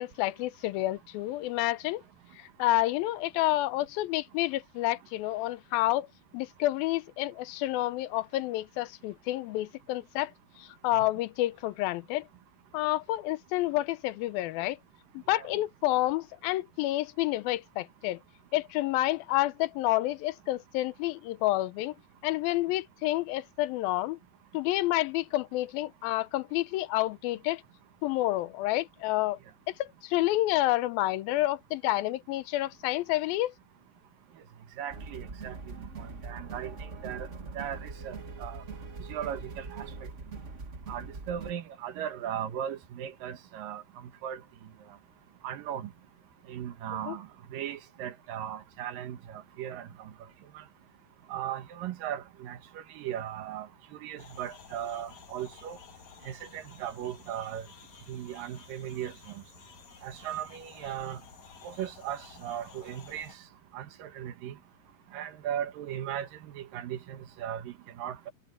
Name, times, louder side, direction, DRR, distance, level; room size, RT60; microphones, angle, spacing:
voice 1, 0.0-2.0 2.4-6.1 6.3-10.3 10.6-12.3 12.7-14.8 15.1-18.2 18.5-21.9 22.2-24.2 24.5-27.6 28.0-29.4 29.7-33.5 47.0-47.2, left 16 dB, 90° left, 2.6 m, -29 dB
voice 2, 34.8-36.7 37.0-37.3 37.6-38.6 39.1-40.1 40.9-43.8 44.2-44.4 45.4-45.9 46.5-49.9 51.3-53.7 54.0-55.8 56.3-57.6 58.1-59.1 60.0-61.2 61.6-63.3 63.7-64.6 65.1-68.3, right 10 dB, 75° right, 2.9 m, -37 dB
sound 1, 34.9-41.5, right 4 dB, 40° right, 1.0 m, -42 dB
sound 2, 54.2-63.4, left 7 dB, 55° left, 3.0 m, -53 dB
omnidirectional pair, 4.1 m